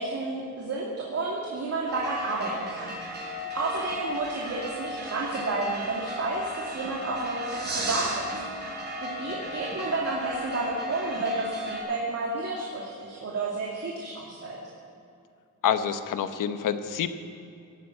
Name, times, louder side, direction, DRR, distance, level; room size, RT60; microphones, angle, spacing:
voice 1, 0.0-8.7 9.0-14.6, right 3 dB, 50° right, -3 dB, 2.4 m, -31 dB
sound 1, 1.9-11.8, equal, 35° right, 4.9 m, -35 dB
voice 2, 15.6-17.1, left 8 dB, 80° left, 10 dB, 1.0 m, -27 dB
16.5 x 9.3 x 8.4 m, 2.5 s
cardioid pair, 120°, 32 cm